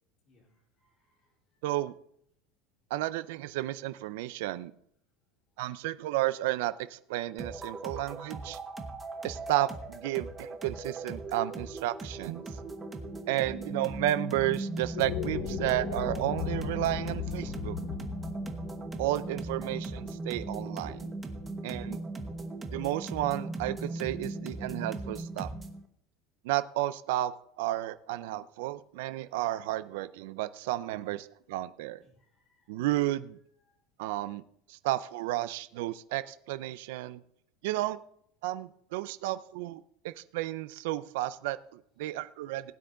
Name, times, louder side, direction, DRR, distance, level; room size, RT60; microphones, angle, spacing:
voice 1, 0.2-1.7 5.5-5.6 30.9-31.1 31.9-32.9 33.5-33.8 42.0-42.2, left 1 dB, 30° left, -2 dB, 4.1 m, -70 dB
voice 2, 1.6-1.9 2.9-4.7 5.6-8.6 9.2-12.5 13.3-17.8 19.0-21.1 21.6-22.0 22.7-25.5 26.4-32.0 32.7-33.4 34.0-34.4 34.7-37.2 37.6-38.0 38.4-42.7, right 15 dB, 70° right, 14 dB, 0.5 m, -32 dB
sound 1, 7.4-25.8, right 2 dB, 10° right, 1.0 m, -38 dB
sound 2, 14.9-21.2, left 11 dB, 55° left, 0.8 m, -38 dB
16.5 x 9.4 x 3.8 m, 0.71 s
cardioid pair, 175°, 0 cm